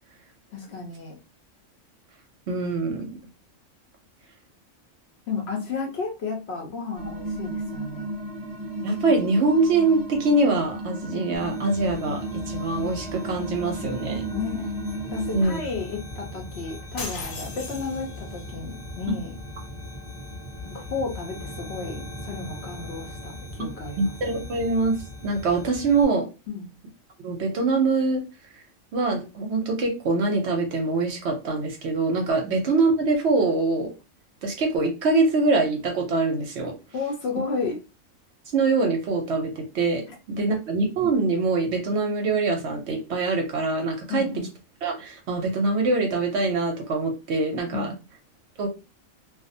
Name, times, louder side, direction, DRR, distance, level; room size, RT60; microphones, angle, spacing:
voice 1, 0.5-1.2 5.3-8.1 14.3-14.7 15.1-19.4 20.6-24.1 26.5-26.7 32.4-32.5 36.9-37.8 40.1-40.2 44.1-44.5 47.7-48.0, left 4 dB, 60° left, 1 dB, 0.7 m, -32 dB
voice 2, 2.5-3.1 8.8-14.3 15.3-15.6 19.1-19.2 24.0-25.0 25.2-26.3 27.2-28.2 28.9-33.9 34.4-36.7 38.5-44.3 44.8-47.9 48.6-48.7, right 3 dB, 65° right, 2 dB, 0.8 m, -24 dB
sound 1, 7.0-15.4, right 1 dB, 30° right, 0.5 m, -33 dB
sound 2, 11.3-26.0, left 1 dB, 15° left, 0.6 m, -39 dB
sound 3, 17.0-18.4, left 3 dB, 80° left, 1.1 m, -37 dB
2.4 x 2.0 x 2.6 m, 0.29 s
omnidirectional pair, 1.4 m